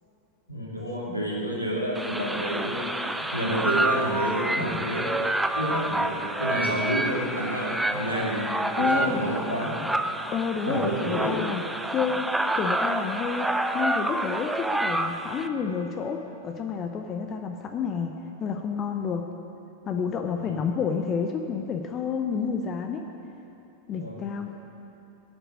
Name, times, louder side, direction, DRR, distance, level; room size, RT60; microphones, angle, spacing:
voice 1, 0.5-5.1 5.5-9.7 10.6-11.3 20.4-20.6 23.9-24.2, equal, 85° left, -4 dB, 2.8 m, -29 dB
sound 1, 1.9-15.5, right 1 dB, 5° right, 0.6 m, -28 dB
voice 2, 8.8-9.2 10.3-11.6 11.9-12.3 12.5-13.5 13.7-19.3 19.9-23.0 23.9-24.5, left 6 dB, 30° left, 5 dB, 0.7 m, -29 dB
11.0 x 7.9 x 9.2 m, 2.9 s
figure-of-eight pair, 90°, 0 cm